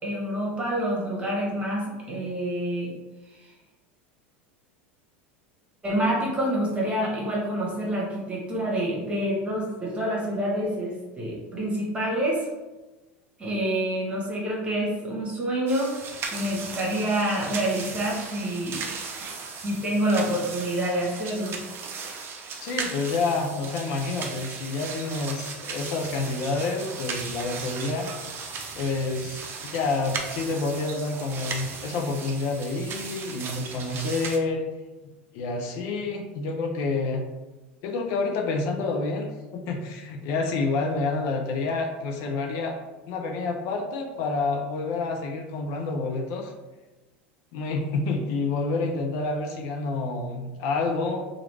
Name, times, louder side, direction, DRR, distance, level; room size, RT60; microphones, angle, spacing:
voice 1, 0.0-2.9 3.3-3.5 5.8-12.5 13.4-16.0 16.3-18.8 19.6-21.6, right 1 dB, 20° right, -3 dB, 1.3 m, -27 dB
sound 1, 15.7-34.4, right 5 dB, 40° right, 0.6 m, -37 dB
voice 2, 22.6-28.1 28.7-29.4 29.7-34.7 35.3-37.2 37.8-42.8 43.1-46.5 47.5-51.3, left 3 dB, 60° left, 3 dB, 0.5 m, -28 dB
3.0 x 2.4 x 3.2 m, 1.1 s
hypercardioid pair, 95°, 6 cm